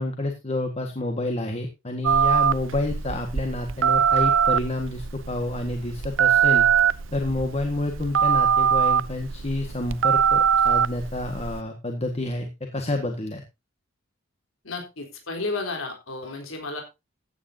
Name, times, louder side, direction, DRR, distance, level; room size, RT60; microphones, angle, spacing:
voice 1, 0.0-6.7 7.1-13.4, left 2 dB, 30° left, 4 dB, 1.7 m, -29 dB
Telephone, 2.0-11.6, right 7 dB, 70° right, 0.7 m, -22 dB
voice 2, 14.6-16.8, left 3 dB, 85° left, 3 dB, 4.0 m, -32 dB
15.5 x 9.2 x 2.8 m, 0.25 s
head